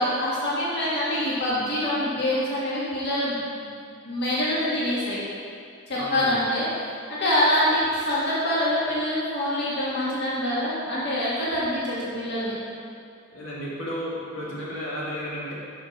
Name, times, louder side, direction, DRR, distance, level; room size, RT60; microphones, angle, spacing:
voice 1, 0.0-3.7 4.0-5.2 5.9-12.5, left 1 dB, 55° left, -8 dB, 1.7 m, -25 dB
voice 2, 5.9-6.4 13.3-15.5, equal, 85° left, -7 dB, 2.0 m, -33 dB
5.8 x 5.7 x 5.9 m, 2.4 s
head